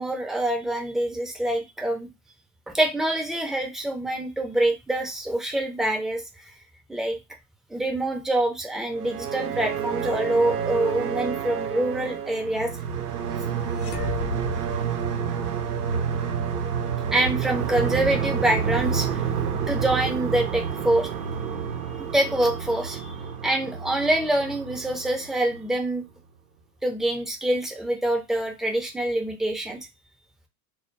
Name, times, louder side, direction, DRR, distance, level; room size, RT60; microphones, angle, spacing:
voice 1, 0.0-2.1 2.7-6.2 6.9-7.2 7.7-12.7 17.1-19.2 19.7-21.1 22.1-23.1 23.4-26.0 26.8-29.8, right 1 dB, ahead, 2 dB, 0.5 m, -25 dB
sound 1, 8.9-25.8, right 7 dB, 90° right, 0.6 m, -29 dB
sound 2, 13.7-15.7, left 12 dB, 70° left, 0.8 m, -36 dB
2.2 x 2.1 x 3.2 m, 0.24 s
hypercardioid pair, 75°, 44 cm